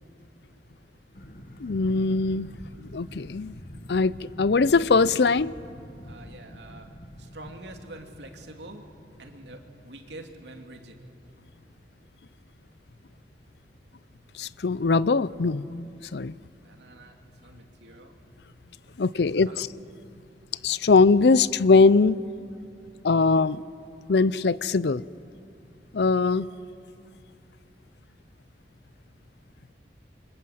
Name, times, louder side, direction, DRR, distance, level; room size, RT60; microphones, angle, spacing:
sound 1, 1.1-10.1, equal, 50° left, 1.8 m, -46 dB
voice 1, 1.6-2.5 2.9-3.6 3.9-4.1 4.4-5.5 14.3-16.4 19.0-19.7 20.6-22.2 23.0-23.6 24.1-25.0 25.9-26.5, left 4 dB, 75° left, 0.5 m, -21 dB
voice 2, 6.0-6.9 7.2-8.9 9.2-11.0 16.6-18.2 19.1-19.6, right 2 dB, 85° right, 2.6 m, -46 dB
28.5 x 25.0 x 7.8 m
head